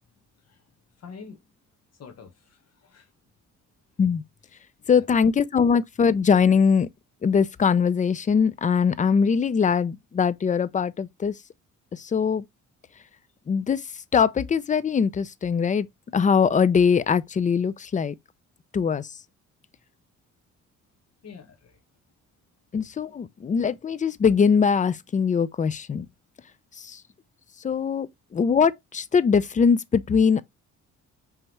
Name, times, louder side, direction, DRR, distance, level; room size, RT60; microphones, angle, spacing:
voice 1, 1.0-1.4 2.0-3.1 4.8-5.1 21.2-21.8, left 5 dB, 60° left, 1.3 m, -46 dB
voice 2, 4.9-6.9 7.2-11.4 11.9-12.5 13.5-15.9 16.1-18.1 18.7-19.2 22.7-26.1 26.8-27.0 27.6-30.4, left 6 dB, 25° left, 0.4 m, -22 dB
5.3 x 3.4 x 2.9 m
cardioid pair, 90°, 30 cm